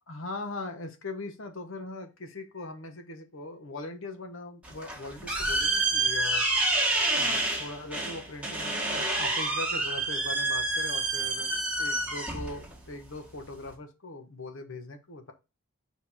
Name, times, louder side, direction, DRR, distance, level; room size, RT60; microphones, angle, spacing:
voice 1, 0.1-6.5 7.1-11.5 11.8-15.3, left 2 dB, 75° left, 6 dB, 1.2 m, -40 dB
sound 1, 4.6-13.7, right 2 dB, 5° right, 1.6 m, -29 dB
5.2 x 4.5 x 4.4 m, 0.27 s
head